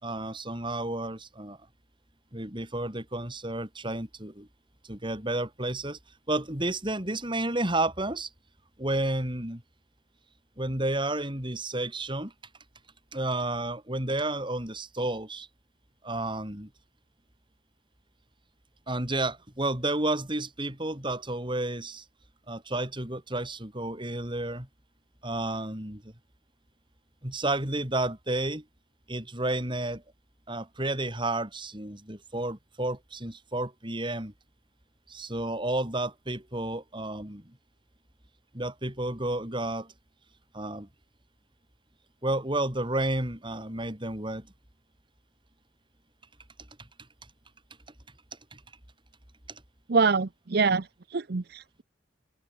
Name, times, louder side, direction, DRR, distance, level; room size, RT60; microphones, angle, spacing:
voice 1, 0.0-1.6 2.3-4.5 4.8-6.0 6.3-8.3 8.8-9.6 10.6-12.3 13.1-15.5 16.0-16.7 18.9-22.0 22.5-24.7 25.2-26.1 27.2-28.6 29.1-30.0 30.5-34.3 35.1-37.6 38.5-39.9 40.5-40.9 42.2-44.5 46.8-46.9 48.5-48.6 49.5-49.6, right 2 dB, 25° right, 4.7 m, -31 dB
voice 2, 49.9-51.8, right 4 dB, 60° right, 0.7 m, -25 dB
head